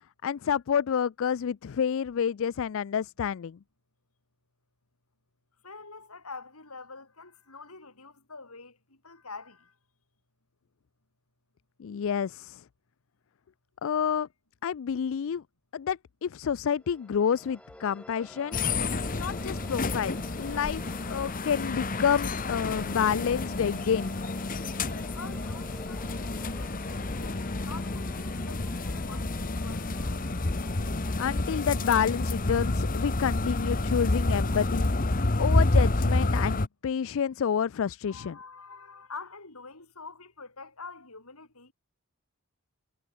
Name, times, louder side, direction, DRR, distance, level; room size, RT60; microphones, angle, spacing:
voice 1, 0.2-3.6 11.8-12.6 13.8-14.3 14.6-15.4 15.7-18.6 19.1-20.8 21.1-24.1 31.2-34.9 35.4-38.4, left 7 dB, 60° left, 0.4 m, -29 dB
voice 2, 5.6-8.8 9.0-9.7 25.1-29.9 33.8-33.9 38.1-41.7, left 4 dB, 80° left, 6.4 m, -46 dB
sound 1, 16.8-35.4, left 1 dB, 5° left, 7.8 m, -49 dB
sound 2, 18.5-36.7, left 2 dB, 40° left, 1.2 m, -29 dB
head